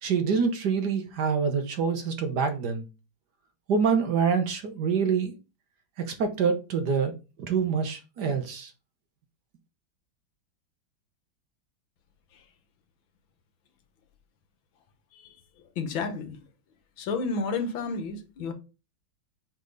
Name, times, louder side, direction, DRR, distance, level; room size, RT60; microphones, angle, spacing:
voice 1, 0.0-2.9 3.7-5.3 6.0-7.1 7.4-8.7, right 6 dB, 60° right, 1.4 m, -26 dB
voice 2, 15.8-16.4 17.0-18.5, left 4 dB, 75° left, 1.7 m, -31 dB
5.3 x 5.1 x 3.9 m
omnidirectional pair, 2.2 m